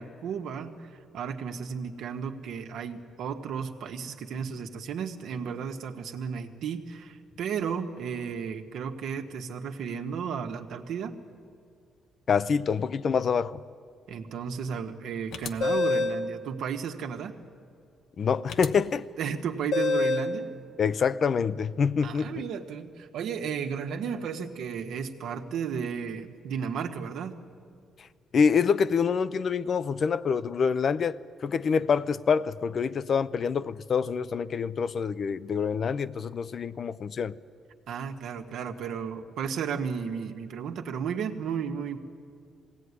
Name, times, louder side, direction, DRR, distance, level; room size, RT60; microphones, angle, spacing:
voice 1, 0.0-11.2 14.1-17.4 19.2-20.5 22.0-27.4 37.9-42.0, right 7 dB, 80° right, 1.4 m, -34 dB
voice 2, 12.3-13.6 18.2-19.1 20.8-22.3 28.3-37.3, left 6 dB, 50° left, 0.6 m, -26 dB
sound 1, 15.3-16.2 18.5-18.7 19.7-20.3, left 3 dB, 75° left, 1.0 m, -26 dB
20.5 x 17.0 x 9.7 m
cardioid pair, 90°, 0 cm